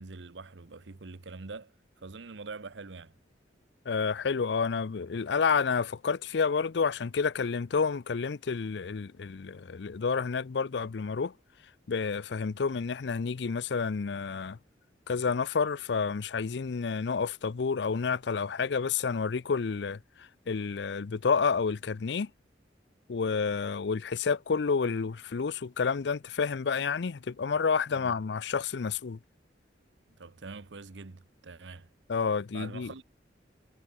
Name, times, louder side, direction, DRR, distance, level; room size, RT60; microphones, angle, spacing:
voice 1, 0.0-3.1 27.9-28.1 30.2-31.9 32.5-33.0, right 3 dB, 85° right, 0.9 m, -44 dB
voice 2, 3.9-11.3 11.9-14.6 15.1-20.0 20.5-22.3 23.1-29.2 32.1-32.9, left 5 dB, 75° left, 0.5 m, -29 dB
head